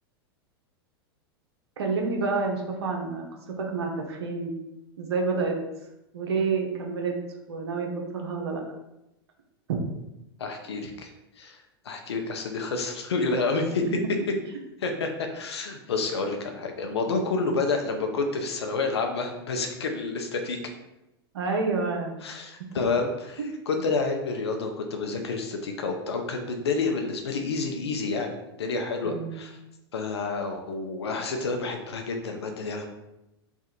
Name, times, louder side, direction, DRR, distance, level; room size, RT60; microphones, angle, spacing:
voice 1, 1.8-4.5 5.0-5.5 6.1-7.1 7.5-8.6 9.7-9.8 21.3-22.1 23.4-23.5 29.0-29.4, right 4 dB, 80° right, 1 dB, 0.9 m, -28 dB
voice 2, 10.4-11.1 11.4-11.6 11.8-13.8 14.8-20.6 22.2-29.6 29.9-32.8, left 3 dB, 85° left, 4 dB, 0.8 m, -29 dB
3.5 x 2.5 x 4.3 m, 0.91 s
hypercardioid pair, 105°, 13 cm